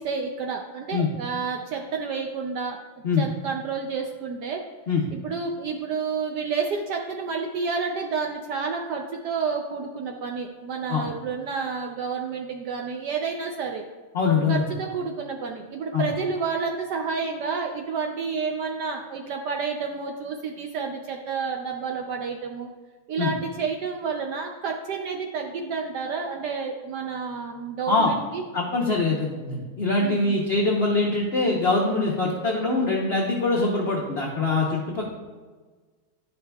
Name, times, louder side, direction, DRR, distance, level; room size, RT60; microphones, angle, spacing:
voice 1, 0.0-2.8 3.2-4.6 5.1-13.8 14.5-22.7 23.1-28.4 30.0-30.4, right 5 dB, 75° right, 2 dB, 0.9 m, -30 dB
voice 2, 14.1-14.7 15.9-16.1 23.2-23.3 27.9-28.1 28.5-35.1, left 3 dB, 90° left, -2 dB, 0.5 m, -23 dB
10.5 x 5.4 x 2.3 m, 1.4 s
omnidirectional pair, 2.3 m